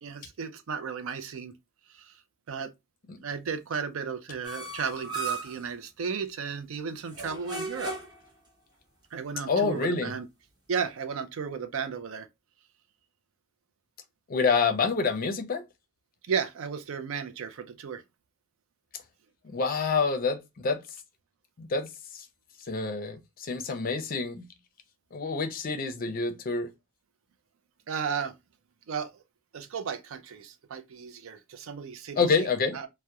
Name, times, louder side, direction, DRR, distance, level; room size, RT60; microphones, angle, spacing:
voice 1, 0.0-1.5 2.0-2.1 2.5-2.7 3.2-7.9 9.1-10.3 10.7-12.3 16.2-18.0 27.9-28.3 28.9-29.2 29.5-32.5 32.7-32.9, right 6 dB, 70° right, 0.4 m, -34 dB
sound 1, 4.4-5.6 7.1-8.3, right 3 dB, 20° right, 0.8 m, -35 dB
voice 2, 9.5-10.1 14.3-15.6 19.5-20.8 21.6-22.3 22.7-24.5 25.1-26.7 32.2-32.8, left 4 dB, 45° left, 0.5 m, -27 dB
2.8 x 2.1 x 2.2 m
head